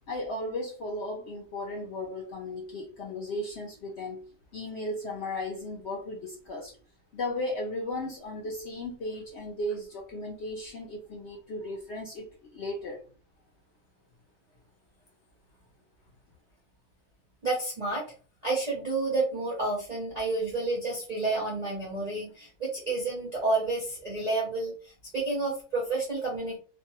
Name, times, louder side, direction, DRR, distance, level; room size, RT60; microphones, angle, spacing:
voice 1, 0.1-4.2 4.5-6.7 7.1-13.0, left 1 dB, 65° left, -1 dB, 0.7 m, -35 dB
voice 2, 17.4-18.0 18.4-26.6, right 3 dB, 55° right, -3 dB, 0.4 m, -30 dB
2.5 x 2.1 x 2.9 m, 0.38 s
omnidirectional pair, 1.7 m